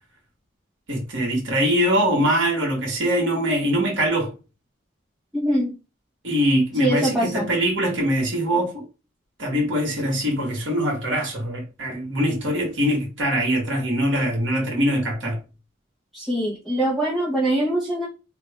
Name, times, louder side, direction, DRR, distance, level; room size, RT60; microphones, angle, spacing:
voice 1, 0.9-4.3 6.2-8.9 9.4-15.4, equal, 85° right, 1.5 m, -23 dB
voice 2, 5.3-5.8 6.8-7.5 16.1-18.1, right 1 dB, ahead, 0.7 m, -23 dB
3.0 x 2.3 x 4.2 m
head